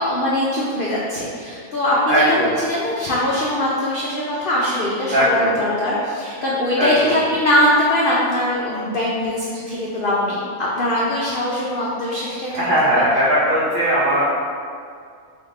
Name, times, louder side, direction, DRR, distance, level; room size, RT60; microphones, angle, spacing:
voice 1, 0.0-12.6, left 1 dB, 85° left, -6 dB, 0.4 m, -21 dB
voice 2, 2.1-2.5 5.1-5.6 6.8-7.2 12.5-14.2, equal, 60° right, -9 dB, 0.5 m, -18 dB
3.6 x 2.7 x 3.6 m, 2.2 s
omnidirectional pair, 1.6 m